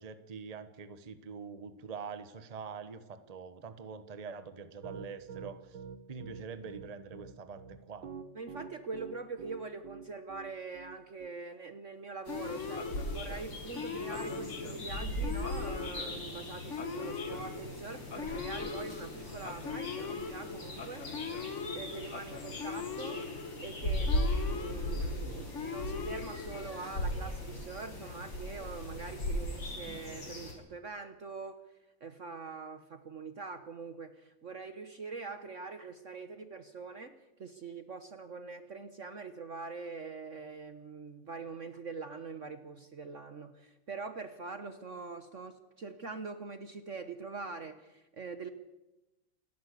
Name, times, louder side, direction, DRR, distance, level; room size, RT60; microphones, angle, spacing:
voice 1, 0.0-5.8 6.1-8.1, right 5 dB, 25° right, 11 dB, 1.0 m, -44 dB
Piano, 4.8-11.3, right 6 dB, 75° right, 2.0 m, -46 dB
voice 2, 8.3-21.1 21.7-23.2 23.6-31.6 32.0-48.5, right 4 dB, 45° right, 10 dB, 1.2 m, -43 dB
sound 1, 12.3-30.5, left 1 dB, 80° left, 5.6 m, -38 dB
Male speech man speaking / Siren, 12.3-27.0, left 5 dB, 40° left, 1.5 m, -41 dB
28.0 x 11.0 x 8.3 m, 1.0 s
omnidirectional pair, 2.1 m